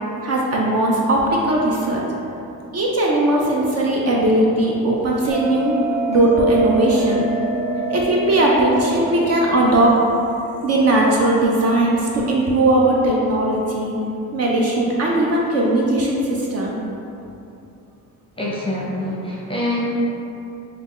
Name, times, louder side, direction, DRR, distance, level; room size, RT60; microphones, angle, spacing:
voice 1, 0.2-2.0 2.7-5.8 6.1-7.3 7.9-9.9 10.6-14.0 14.3-16.8, right 1 dB, 40° right, -3 dB, 0.5 m, -18 dB
Bell, 5.3-10.4, right 2 dB, 15° right, 1.0 m, -26 dB
voice 2, 18.4-19.9, left 1 dB, 15° left, -6 dB, 0.6 m, -25 dB
3.3 x 2.4 x 3.7 m, 2.8 s
cardioid pair, 115°, 38 cm